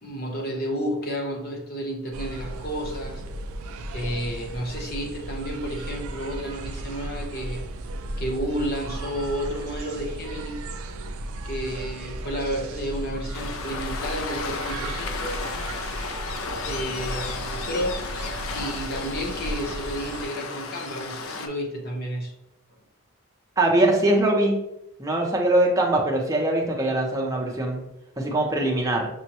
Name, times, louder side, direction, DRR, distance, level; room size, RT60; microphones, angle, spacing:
voice 1, 0.0-3.2 3.9-7.6 8.2-10.6 11.4-15.4 16.6-18.1 18.5-22.3, equal, 45° left, 0 dB, 0.8 m, -31 dB
sound 1, 2.1-20.2, right 1 dB, 70° right, 0.3 m, -35 dB
Waves surf, 13.3-21.5, left 4 dB, 70° left, 0.4 m, -34 dB
voice 2, 23.6-24.6 25.0-27.8 28.2-29.1, right 1 dB, 15° right, -1 dB, 0.6 m, -22 dB
6.1 x 2.1 x 2.9 m, 0.85 s
head